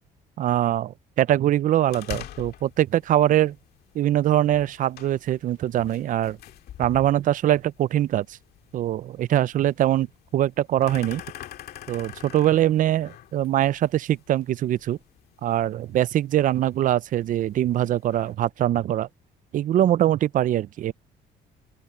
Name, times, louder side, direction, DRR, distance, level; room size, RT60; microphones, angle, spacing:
voice 1, 0.4-3.6 3.9-6.4 6.8-8.4 8.7-10.1 10.3-11.2 11.9-15.0 15.4-19.1 19.5-20.9, right 12 dB, 50° right, 0.5 m, -22 dB
sound 1, 1.9-18.4, left 12 dB, 70° left, 2.1 m, -45 dB
open air
cardioid pair, 110°, 17 cm